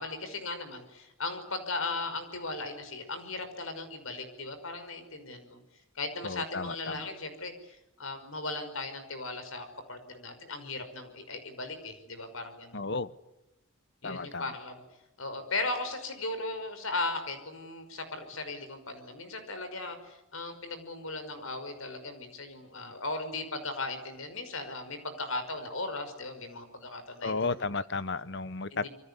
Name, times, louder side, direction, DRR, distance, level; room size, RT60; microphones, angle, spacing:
voice 1, 0.0-5.6 6.0-12.9 14.0-14.8 15.2-27.6 28.7-28.9, left 3 dB, 75° left, 5.6 m, -37 dB
voice 2, 6.2-7.0 12.7-13.1 14.0-14.4 27.2-28.9, left 3 dB, 55° left, 1.0 m, -33 dB
27.0 x 24.0 x 8.4 m
head